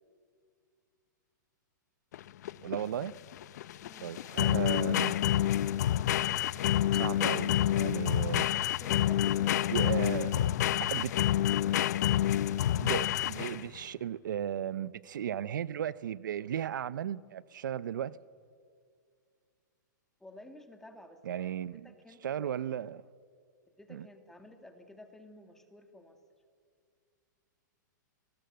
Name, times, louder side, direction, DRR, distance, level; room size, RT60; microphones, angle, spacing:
sound 1, 2.1-13.8, left 12 dB, 60° left, 0.6 m, -28 dB
voice 1, 2.6-3.1 4.0-5.1 6.9-8.5 9.7-10.4 10.9-11.2 12.8-18.2 21.2-21.9 22.2-23.0 23.9-24.1, right 10 dB, 80° right, 0.6 m, -35 dB
voice 2, 3.8-4.2 8.6-9.8 20.2-21.5 21.8-22.6 23.7-26.2, left 1 dB, 5° left, 1.8 m, -53 dB
26.0 x 19.5 x 7.7 m
hypercardioid pair, 155°, 10 cm